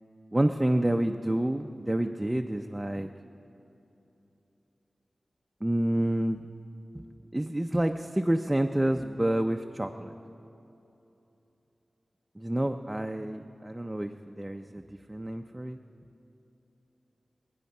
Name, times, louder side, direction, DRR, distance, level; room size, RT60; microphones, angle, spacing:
voice 1, 0.3-3.1 5.6-6.4 6.9-7.0 7.3-10.1 12.4-14.8 15.1-15.8, right 1 dB, 15° right, 4 dB, 0.5 m, -28 dB
26.0 x 9.3 x 5.4 m, 3.0 s
wide cardioid pair, 95°, 0 cm